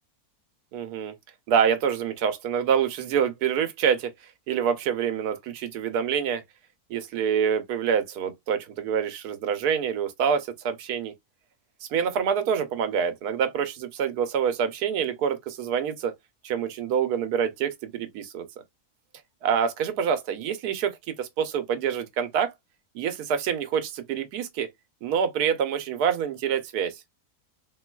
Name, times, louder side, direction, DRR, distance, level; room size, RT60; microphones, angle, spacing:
voice 1, 0.7-1.1 1.5-4.1 4.5-6.4 6.9-11.1 11.9-16.1 16.4-18.5 19.4-22.5 22.9-24.7 25.0-26.9, right 7 dB, 80° right, 1.2 m, -26 dB
3.8 x 2.3 x 2.2 m
omnidirectional pair, 1.6 m